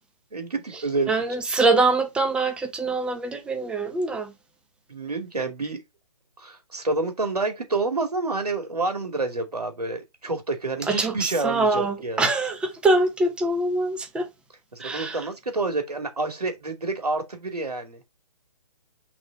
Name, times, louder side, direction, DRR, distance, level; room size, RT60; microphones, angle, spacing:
voice 1, 0.3-1.1 4.9-5.8 6.4-12.3 14.7-18.0, right 3 dB, 80° right, 2.4 m, -28 dB
voice 2, 1.1-4.3 10.9-14.3 14.8-15.2, right 2 dB, 5° right, 0.8 m, -24 dB
6.0 x 3.5 x 5.0 m
figure-of-eight pair, 140°, 20 cm